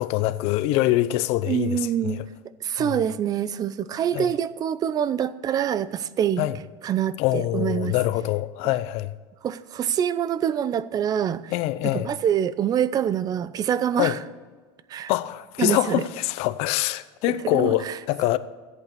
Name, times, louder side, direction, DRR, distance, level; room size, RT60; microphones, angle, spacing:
voice 1, 0.0-2.2 2.8-3.0 4.1-4.3 6.4-6.6 7.2-9.1 11.5-12.1 14.0-14.2 15.1-18.4, left 16 dB, 60° left, 0.7 m, -24 dB
voice 2, 1.5-2.2 2.6-6.5 6.8-7.9 9.4-11.5 11.8-14.2 14.9-15.1 15.6-16.0 17.3-18.0, right 9 dB, 30° right, 0.6 m, -25 dB
14.0 x 8.3 x 6.8 m
supercardioid pair, 130°, 12 cm